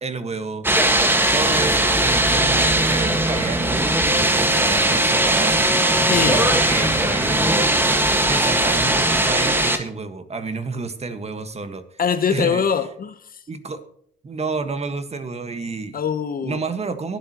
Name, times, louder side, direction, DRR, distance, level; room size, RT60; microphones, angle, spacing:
voice 1, 0.0-0.7 1.3-5.6 5.9-7.6 8.3-12.0 12.3-12.6 13.5-13.8 14.2-16.0 16.4-17.2, right 4 dB, 30° right, 8 dB, 1.6 m, -30 dB
sound 1, 0.6-9.8, right 1 dB, 10° right, 1.7 m, -19 dB
voice 2, 6.0-6.4 12.0-13.2 15.9-16.6, left 7 dB, 45° left, 12 dB, 1.0 m, -22 dB
22.0 x 7.6 x 3.0 m, 0.65 s
cardioid pair, 90°, 20 cm